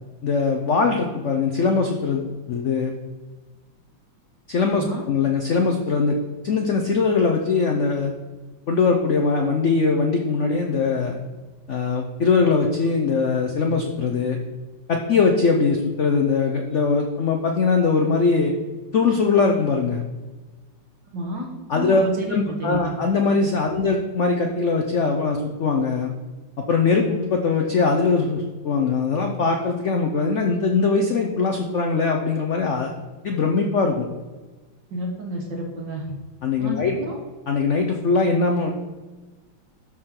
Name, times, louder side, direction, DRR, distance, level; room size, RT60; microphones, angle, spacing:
voice 1, 0.2-2.9 4.5-6.2 6.4-8.1 8.7-11.2 11.7-14.4 14.9-18.5 18.9-20.0 21.7-26.1 26.7-32.9 33.2-34.1 36.4-37.0 37.5-38.7, left 4 dB, 75° left, 2 dB, 0.6 m, -21 dB
voice 2, 4.7-5.0 21.1-22.9 23.6-23.8 34.9-36.1 36.6-37.2, equal, 60° right, 0 dB, 2.2 m, -31 dB
13.0 x 4.5 x 3.8 m, 1.2 s
omnidirectional pair, 2.2 m